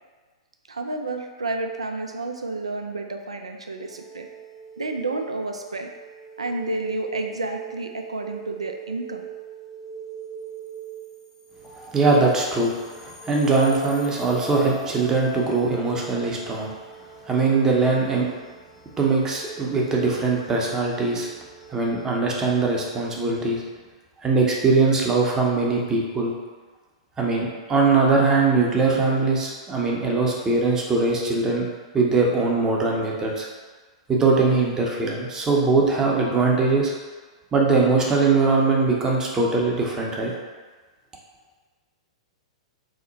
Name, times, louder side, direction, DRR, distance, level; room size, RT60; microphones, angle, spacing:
voice 1, 0.7-4.3 4.8-5.9 6.4-9.2, right 2 dB, 90° right, 4 dB, 0.3 m, -30 dB
sound 1, 3.8-22.2, right 2 dB, 20° left, 0.8 m, -40 dB
voice 2, 11.8-16.7 17.3-18.3 19.0-21.3 21.7-23.6 24.2-26.3 27.2-31.7 31.9-33.5 34.1-36.9 37.5-40.3, right 3 dB, 20° right, -2 dB, 0.6 m, -21 dB
2.8 x 2.1 x 3.8 m, 1.4 s
hypercardioid pair, 105°, 3 cm